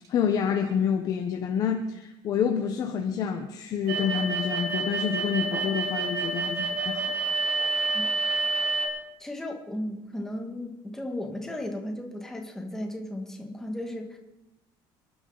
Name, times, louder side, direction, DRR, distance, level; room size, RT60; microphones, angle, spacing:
voice 1, 0.1-7.1, left 7 dB, 40° left, 4 dB, 1.1 m, -28 dB
sound 1, 3.9-8.9, right 3 dB, 85° right, 3.4 m, -28 dB
voice 2, 9.2-14.2, left 1 dB, 5° left, 2 dB, 1.8 m, -35 dB
27.5 x 11.5 x 4.1 m, 0.94 s
cardioid pair, 175°, 10 cm